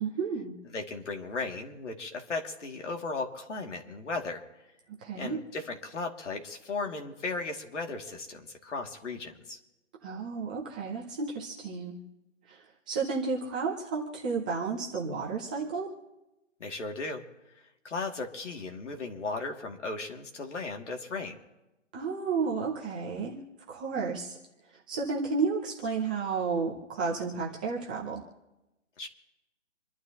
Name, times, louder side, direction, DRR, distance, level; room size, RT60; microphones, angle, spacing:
voice 1, 0.0-0.6 5.0-5.4 10.0-12.0 12.5-15.9 21.9-23.4 23.7-24.4 24.9-28.2, right 5 dB, 5° right, -4 dB, 0.6 m, -32 dB
voice 2, 0.7-4.4 5.1-9.6 16.6-17.2 17.8-21.4 29.0-29.1, left 3 dB, 70° left, 2 dB, 2.6 m, -36 dB
27.5 x 11.5 x 3.0 m, 1.0 s
hypercardioid pair, 165°, 37 cm